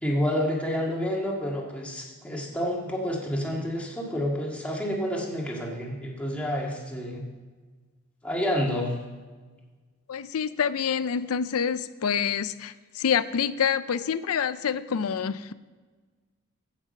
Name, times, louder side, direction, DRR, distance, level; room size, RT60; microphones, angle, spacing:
voice 1, 0.0-7.3 8.2-9.0, equal, 5° left, -2 dB, 1.8 m, -29 dB
voice 2, 10.1-15.5, left 7 dB, 80° left, 15 dB, 0.5 m, -27 dB
15.0 x 6.1 x 5.3 m, 1.4 s
head